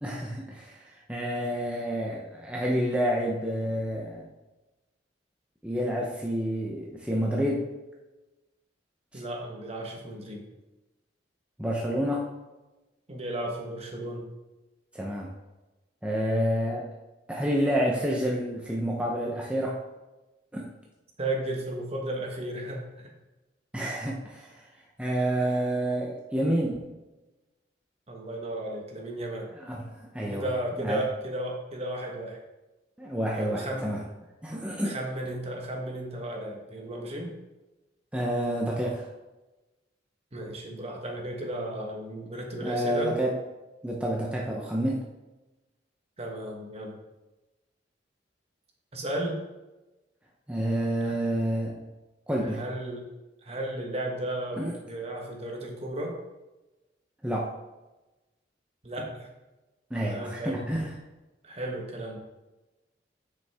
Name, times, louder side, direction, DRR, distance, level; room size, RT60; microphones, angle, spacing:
voice 1, 0.0-4.3 5.6-7.7 11.6-12.3 14.9-15.3 16.0-16.8 17.3-19.8 20.5-20.7 23.7-24.6 25.0-26.9 29.6-30.5 30.8-31.0 33.0-34.0 34.4-34.9 38.1-39.1 42.6-43.4 43.8-45.0 50.5-51.7 52.3-52.6 54.6-54.8 57.2-57.5 59.9-60.8, equal, 5° right, -3 dB, 0.8 m, -29 dB
voice 2, 9.1-10.5 13.1-14.3 21.2-23.1 28.1-29.5 30.3-32.4 33.3-33.9 34.8-37.3 40.3-43.1 46.2-47.0 48.9-49.4 51.0-51.2 52.4-53.1 53.4-56.2 58.8-59.3 59.9-60.7 61.4-62.2, right 1 dB, 35° right, 1 dB, 1.4 m, -34 dB
8.2 x 6.4 x 3.6 m, 1.1 s
head